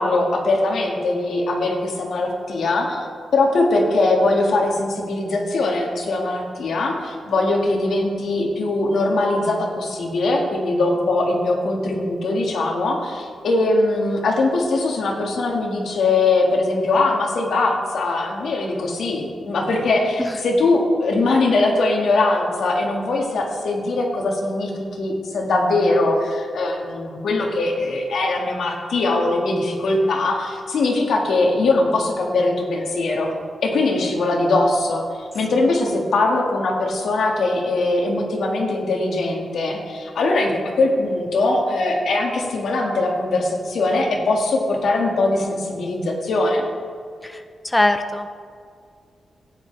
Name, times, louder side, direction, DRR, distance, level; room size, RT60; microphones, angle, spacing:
voice 1, 0.0-3.1 3.3-33.3 33.6-40.5 40.8-46.7, left 2 dB, 75° left, 0 dB, 2.0 m, -21 dB
voice 2, 47.2-48.3, left 2 dB, 10° left, 8 dB, 0.4 m, -22 dB
15.0 x 10.0 x 3.4 m, 2.2 s
wide cardioid pair, 145°, 0 cm